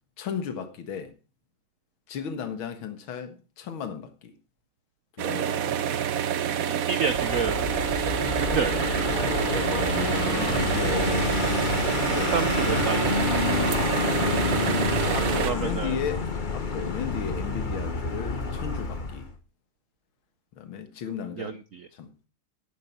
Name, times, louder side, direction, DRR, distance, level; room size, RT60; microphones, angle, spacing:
voice 1, 0.2-1.1 2.1-4.4 5.2-5.9 10.2-12.6 13.5-13.7 14.9-16.3 16.5-19.3 20.6-21.6 21.9-22.1, left 7 dB, 75° left, 2.3 m, -35 dB
sound 1, 5.2-15.5, right 9 dB, 60° right, 1.0 m, -27 dB
voice 2, 6.7-7.6 8.4-8.9 12.3-13.2 15.5-15.9 21.4-21.9, right 6 dB, 80° right, 0.7 m, -29 dB
Vehicle, 7.1-19.3, left 4 dB, 30° left, 1.0 m, -28 dB
11.5 x 9.3 x 4.5 m
omnidirectional pair, 2.3 m